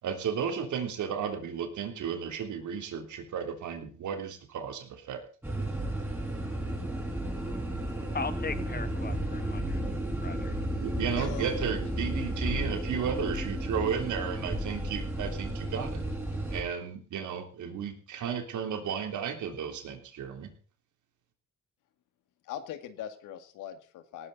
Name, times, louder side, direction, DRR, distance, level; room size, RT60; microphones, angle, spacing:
voice 1, 0.0-5.2 10.8-16.0 16.5-20.5, right 7 dB, 75° right, 6 dB, 3.4 m, -34 dB
sound 1, 5.4-16.6, right 1 dB, 5° right, 6.5 m, -33 dB
voice 2, 8.1-9.8 10.2-10.7, left 4 dB, 30° left, 11 dB, 2.0 m, -38 dB
voice 3, 11.1-11.5 22.4-24.3, left 10 dB, 90° left, 9 dB, 2.1 m, -41 dB
18.0 x 13.5 x 4.1 m, 0.40 s
cardioid pair, 90°, 30 cm